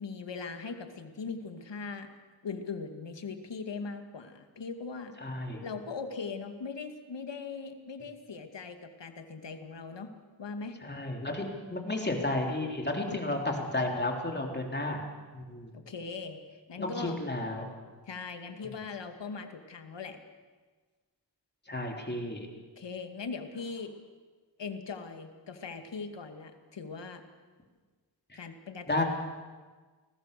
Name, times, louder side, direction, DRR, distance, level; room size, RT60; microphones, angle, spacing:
voice 1, 0.0-2.1 2.4-5.2 5.6-10.1 10.4-10.8 13.1-13.4 15.7-16.4 16.7-17.2 18.1-20.2 22.8-23.9 24.6-27.2 28.3-29.0, left 4 dB, 75° left, 6 dB, 2.3 m, -40 dB
voice 2, 5.2-5.6 10.8-15.0 15.3-15.7 16.8-17.7 21.7-22.5 28.3-28.4 28.9-29.0, left 2 dB, 25° left, 1 dB, 3.6 m, -32 dB
30.0 x 20.5 x 6.8 m, 1.4 s
wide cardioid pair, 130°, 44 cm